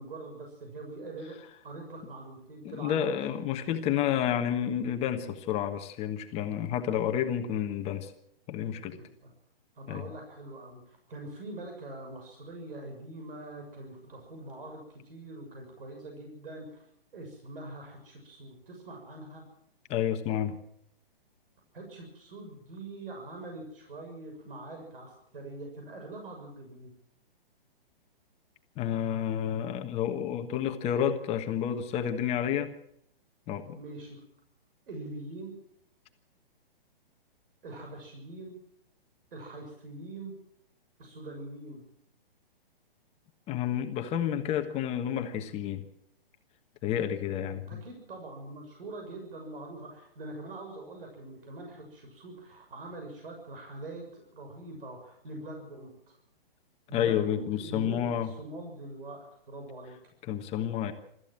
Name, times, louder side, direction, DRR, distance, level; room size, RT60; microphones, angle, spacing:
voice 1, 0.0-3.2 8.7-9.3 9.7-19.4 21.7-26.9 33.8-34.2 34.9-35.5 37.6-38.5 39.3-40.3 41.0-41.8 47.7-56.2 56.9-60.0, right 2 dB, 65° right, 3 dB, 6.7 m, -43 dB
voice 2, 2.6-8.1 8.5-9.0 9.9-10.0 19.9-20.6 28.8-32.7 33.5-33.8 43.5-45.8 46.8-47.8 56.9-58.3 60.3-60.9, left 9 dB, 20° left, 6 dB, 1.3 m, -30 dB
24.5 x 14.0 x 7.5 m, 0.72 s
hypercardioid pair, 145°, 29 cm